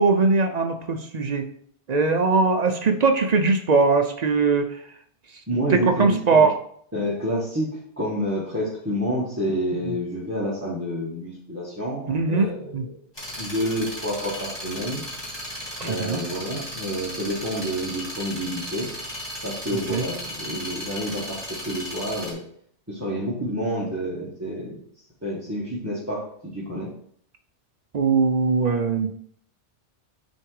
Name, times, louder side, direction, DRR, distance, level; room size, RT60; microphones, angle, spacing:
voice 1, 0.0-1.5 1.9-4.8 5.7-6.5 9.8-10.0 12.1-12.8 15.8-16.2 19.9-20.0 27.9-29.1, right 4 dB, 50° right, 6 dB, 0.5 m, -21 dB
voice 2, 5.5-6.5 6.9-7.7 8.0-12.9 13.4-15.0 15.8-18.9 19.4-22.4 22.9-24.8 25.2-26.9, equal, 15° right, -7 dB, 1.3 m, -28 dB
sound 1, 13.2-22.3, equal, 20° left, 1.8 m, -35 dB
6.5 x 3.6 x 4.7 m, 0.64 s
omnidirectional pair, 1.2 m